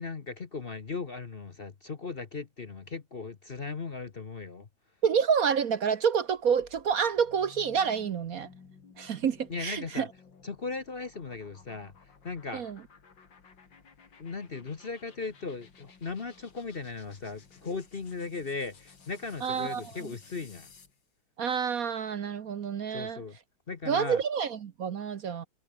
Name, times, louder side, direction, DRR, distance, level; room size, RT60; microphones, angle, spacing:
voice 1, 0.0-4.7 9.5-10.1 10.4-12.6 14.2-20.7 22.9-23.4 23.7-24.2, left 4 dB, 35° left, 1.1 m, -37 dB
voice 2, 5.0-8.5 9.0-10.1 12.5-12.8 19.4-19.8 21.4-23.2 23.9-25.5, right 7 dB, 55° right, 1.3 m, -28 dB
sound 1, 6.2-21.0, left 5 dB, 80° left, 3.4 m, -56 dB
omnidirectional pair, 2.0 m